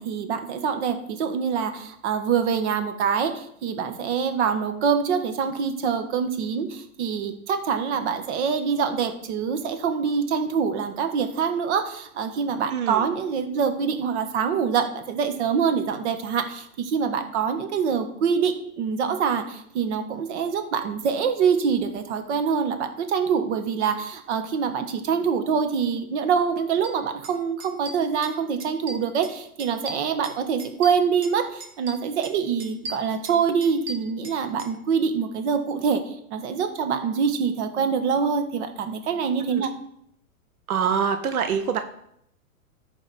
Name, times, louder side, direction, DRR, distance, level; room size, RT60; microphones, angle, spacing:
voice 1, 0.0-39.7, right 6 dB, 50° right, 7 dB, 1.3 m, -25 dB
voice 2, 12.7-13.1 39.5-39.7 40.7-41.8, right 7 dB, 80° right, 8 dB, 0.9 m, -25 dB
sound 1, 26.8-26.9 27.2-27.3 27.6-28.3 28.6-29.3 29.6-31.4 31.6-32.3 32.6-34.7, right 2 dB, 35° right, 2.1 m, -38 dB
13.5 x 5.1 x 4.1 m, 0.73 s
hypercardioid pair, 145°, 43 cm